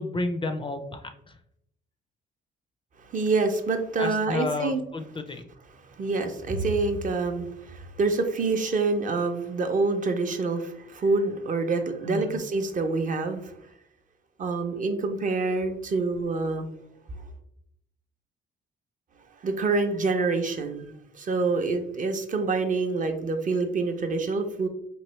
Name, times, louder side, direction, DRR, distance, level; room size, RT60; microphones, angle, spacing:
voice 1, 0.0-1.4 4.0-5.5 12.1-12.4, left 2 dB, 25° left, 6 dB, 0.4 m, -31 dB
voice 2, 3.1-4.8 6.0-13.6 14.4-16.7 19.4-24.7, right 3 dB, 40° right, 5 dB, 0.5 m, -26 dB
3.1 x 2.7 x 3.0 m, 0.77 s
cardioid pair, 90°, 20 cm